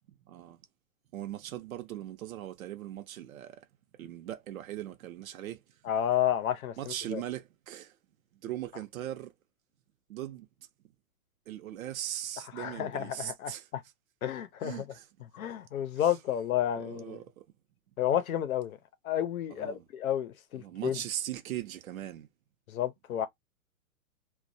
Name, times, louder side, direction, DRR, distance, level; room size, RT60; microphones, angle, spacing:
voice 1, 0.2-0.6 1.1-3.6 4.0-5.6 6.8-7.9 8.3-9.3 10.1-10.5 11.5-13.7 14.6-15.1 16.0-16.1 16.8-17.4 19.6-19.8 20.5-22.3, right 12 dB, 80° right, 0.7 m, -39 dB
voice 2, 5.8-7.2 12.6-13.8 14.2-14.8 15.3-17.2 18.0-18.8 19.0-21.0 22.7-23.3, left 10 dB, 85° left, 0.7 m, -31 dB
2.3 x 2.0 x 2.6 m
hypercardioid pair, 140°, 41 cm